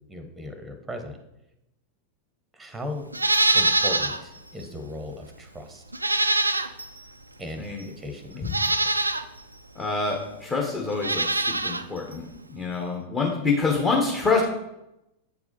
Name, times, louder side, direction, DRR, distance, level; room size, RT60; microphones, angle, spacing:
voice 1, 0.1-1.2 2.5-3.1 3.5-5.8 7.4-8.7, left 1 dB, 5° right, 7 dB, 0.9 m, -37 dB
Livestock farm animals working animals, 3.1-4.2 4.6-4.7 5.9-7.0 7.8-7.9 8.4-9.2 10.9-11.8 12.1-12.2, right 2 dB, 80° right, 0.4 m, -23 dB
voice 2, 9.7-14.4, left 4 dB, 20° left, -1 dB, 1.2 m, -26 dB
8.2 x 4.7 x 4.0 m, 0.89 s
figure-of-eight pair, 90°, 0 cm